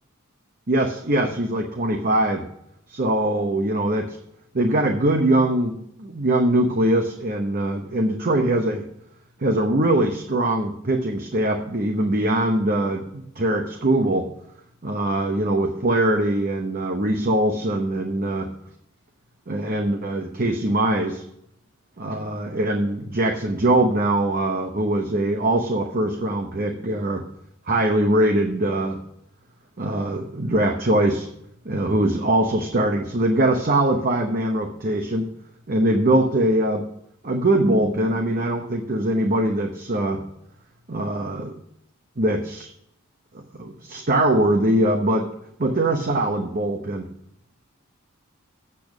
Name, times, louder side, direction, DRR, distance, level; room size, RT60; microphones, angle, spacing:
voice 1, 0.7-2.5 2.9-4.2 4.5-8.8 9.4-14.3 14.8-18.5 19.5-21.2 22.0-27.2 27.7-29.0 29.8-31.3 31.6-35.3 35.7-36.8 37.2-40.2 40.9-41.6 42.2-42.7 43.3-45.3 45.6-47.1, right 1 dB, 45° right, 3 dB, 0.9 m, -22 dB
8.5 x 7.0 x 6.0 m, 0.73 s
head